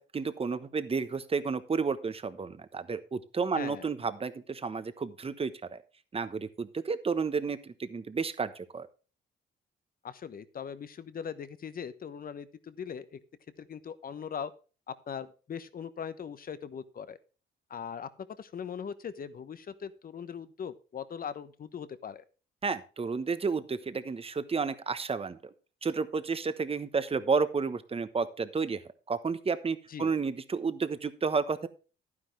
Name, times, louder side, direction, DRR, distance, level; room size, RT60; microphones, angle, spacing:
voice 1, 0.0-5.8 6.1-8.9 22.6-25.4 25.8-28.8 29.1-31.7, right 5 dB, 30° right, 12 dB, 1.1 m, -31 dB
voice 2, 3.5-3.9 10.0-13.2 13.6-14.5 14.9-17.2 17.7-18.1 18.4-22.2 29.9-30.1, left 7 dB, 45° left, 14 dB, 1.1 m, -40 dB
11.5 x 9.8 x 3.3 m, 0.34 s
cardioid pair, 90°, 20 cm